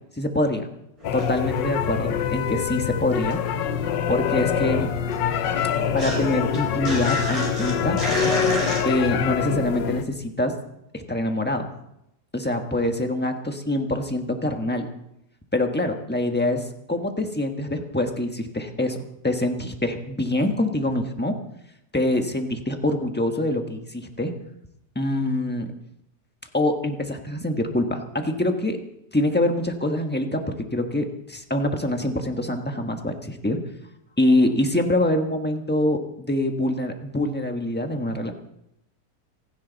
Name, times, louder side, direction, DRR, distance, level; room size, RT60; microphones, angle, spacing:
voice 1, 0.2-0.7 1.1-3.4 4.1-4.9 5.9-8.0 8.8-10.5 10.9-11.7 12.3-14.9 15.5-19.0 19.2-21.3 21.9-24.3 24.9-25.7 26.5-28.8 29.1-33.6 34.2-38.3, left 1 dB, 5° left, 4 dB, 1.1 m, -25 dB
sound 1, 1.0-10.0, left 8 dB, 90° left, 1.5 m, -25 dB
sound 2, 1.0-2.9 3.2-8.8, right 1 dB, 15° right, 5.3 m, -33 dB
26.5 x 10.5 x 4.0 m, 0.81 s
omnidirectional pair, 1.9 m